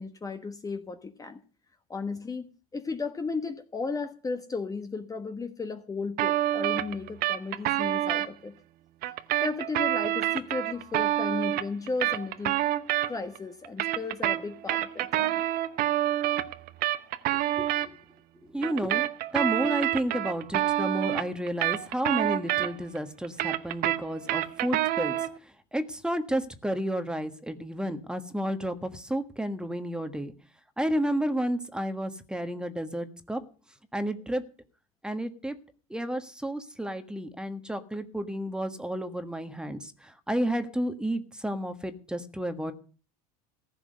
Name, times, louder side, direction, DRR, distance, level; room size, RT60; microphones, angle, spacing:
voice 1, 0.0-1.4 1.9-8.5 9.4-12.6 13.1-15.4, left 4 dB, 20° left, 8 dB, 1.2 m, -35 dB
sound 1, 6.2-8.3 9.0-13.4 13.6-17.9 18.6-23.0 23.2-25.4, right 14 dB, 55° right, 0.9 m, -27 dB
voice 2, 17.6-18.0 18.5-19.0 19.3-30.3 30.8-33.4 33.9-34.4 35.0-35.5 35.9-42.7, right 1 dB, 5° right, 9 dB, 1.4 m, -31 dB
15.0 x 6.1 x 9.5 m, 0.39 s
supercardioid pair, 105°, 18 cm